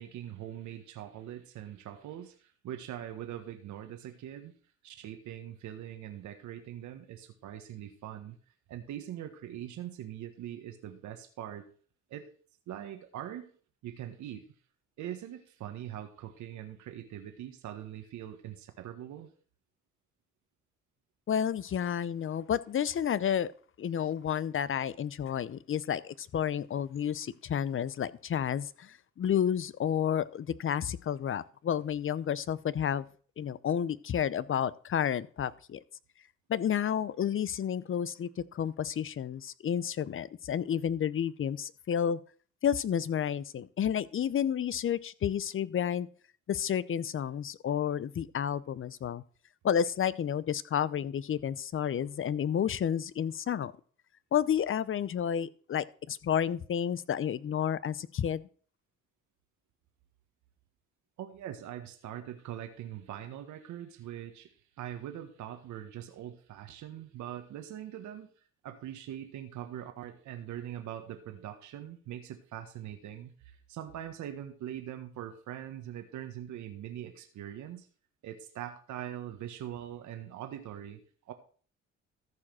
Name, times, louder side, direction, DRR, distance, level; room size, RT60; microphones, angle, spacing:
voice 1, 0.0-4.5 4.8-8.4 8.7-11.7 12.1-12.3 12.7-13.5 13.8-14.5 15.0-19.3 61.2-68.3 68.6-77.9 78.2-81.3, right 11 dB, 75° right, 6 dB, 1.4 m, -42 dB
voice 2, 21.3-23.5 23.8-33.1 33.4-35.8 36.5-42.2 42.6-46.1 46.5-49.2 49.6-53.7 54.3-58.4, left 9 dB, 45° left, 18 dB, 0.7 m, -31 dB
14.0 x 4.9 x 6.2 m, 0.43 s
supercardioid pair, 70°, 29 cm